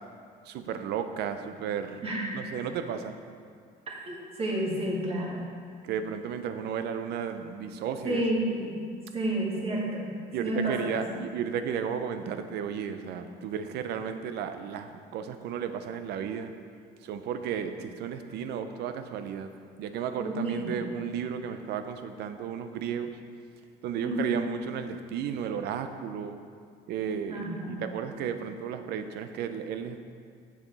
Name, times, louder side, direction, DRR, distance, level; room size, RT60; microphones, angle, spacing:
voice 1, 0.5-2.0 2.3-3.2 5.8-8.2 10.3-16.5 17.0-19.5 19.8-23.2 23.8-26.4 26.9-30.0, right 7 dB, 75° right, 9 dB, 0.6 m, -33 dB
voice 2, 4.1-5.4 8.0-8.7 9.1-10.1 10.4-10.8 20.2-20.7 24.0-24.4 27.3-27.8, right 1 dB, 35° right, -4 dB, 2.0 m, -30 dB
7.6 x 7.1 x 4.0 m, 2.2 s
cardioid pair, 110°, 17 cm